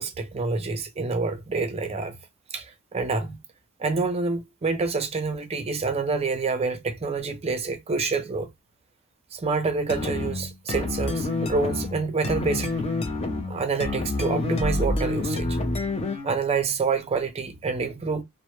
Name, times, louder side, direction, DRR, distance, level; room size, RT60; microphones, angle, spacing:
voice 1, 0.0-2.2 2.5-3.4 3.8-8.5 9.3-12.7 13.5-15.5 16.2-18.2, right 4 dB, 30° right, 0.4 m, -27 dB
sound 1, 9.9-16.4, left 2 dB, 30° left, 0.5 m, -28 dB
2.1 x 2.1 x 2.9 m
head